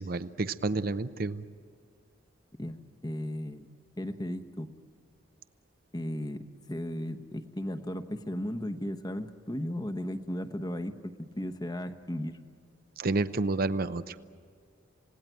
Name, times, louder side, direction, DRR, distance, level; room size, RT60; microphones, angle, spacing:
voice 1, 0.0-1.4 13.0-14.1, right 3 dB, 50° right, 13 dB, 0.7 m, -30 dB
voice 2, 2.6-3.7 4.0-4.7 5.9-12.4, left 1 dB, 20° left, 9 dB, 1.0 m, -35 dB
28.0 x 18.0 x 9.1 m, 2.1 s
head